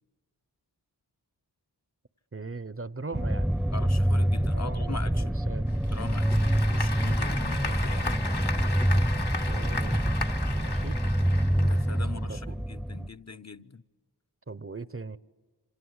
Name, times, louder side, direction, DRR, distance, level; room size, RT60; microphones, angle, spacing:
voice 1, 2.3-3.5 4.5-5.7 9.1-10.0 10.5-11.0 12.3-12.6 14.5-15.2, right 3 dB, 35° right, 0.8 m, -39 dB
sound 1, 3.1-13.1, equal, ahead, 0.8 m, -26 dB
voice 2, 3.7-5.4 5.9-8.2 11.6-13.8, left 4 dB, 40° left, 0.9 m, -41 dB
Applause / Crowd, 5.7-12.2, left 3 dB, 75° left, 1.6 m, -36 dB
27.5 x 26.5 x 8.0 m
wide cardioid pair, 45°, 39 cm